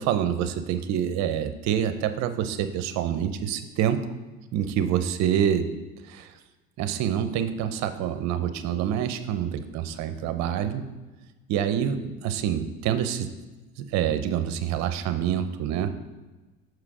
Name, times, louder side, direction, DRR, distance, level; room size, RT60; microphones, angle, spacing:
voice 1, 0.0-4.1 4.5-5.7 6.1-6.3 6.8-10.9 11.5-13.3 13.8-16.0, right 9 dB, 65° right, 10 dB, 0.7 m, -26 dB
6.1 x 4.8 x 4.9 m, 1.2 s
supercardioid pair, 105°, 30 cm